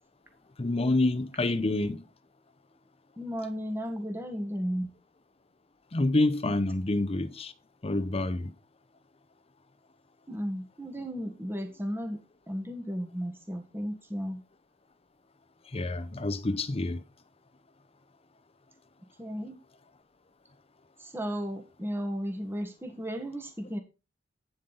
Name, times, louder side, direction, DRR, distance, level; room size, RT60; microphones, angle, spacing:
voice 1, 0.6-2.1 5.9-7.5 7.8-8.5 15.7-17.0, left 2 dB, 30° left, 0.7 m, -27 dB
voice 2, 3.2-4.9 10.3-12.2 12.5-14.4 19.2-19.6 21.0-23.8, equal, 10° right, 1.4 m, -34 dB
9.4 x 7.6 x 4.0 m
head